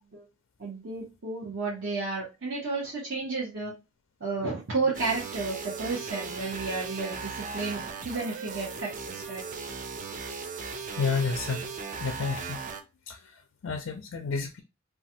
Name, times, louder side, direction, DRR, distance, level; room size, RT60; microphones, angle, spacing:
voice 1, 0.6-3.7 4.2-9.4, right 3 dB, 55° right, 0.9 m, -32 dB
sound 1, 4.9-12.8, right 4 dB, 35° right, 0.3 m, -37 dB
voice 2, 11.0-11.7 12.0-12.6 13.1-14.6, left 4 dB, 60° left, 0.4 m, -31 dB
3.1 x 2.2 x 2.7 m
head